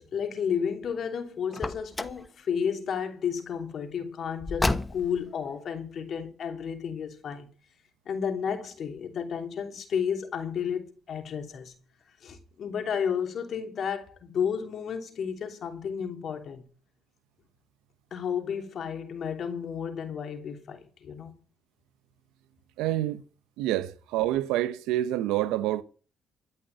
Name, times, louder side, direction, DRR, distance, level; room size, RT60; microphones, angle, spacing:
voice 1, 0.0-7.5 8.0-11.7 12.2-16.6 18.1-21.3, left 7 dB, 60° left, 3.0 m, -32 dB
Car, 1.5-2.3 4.4-5.3, left 2 dB, 20° left, 1.2 m, -30 dB
voice 2, 22.8-23.2 23.6-25.8, right 14 dB, 85° right, 0.9 m, -27 dB
14.0 x 6.5 x 8.1 m
supercardioid pair, 65°, 0 cm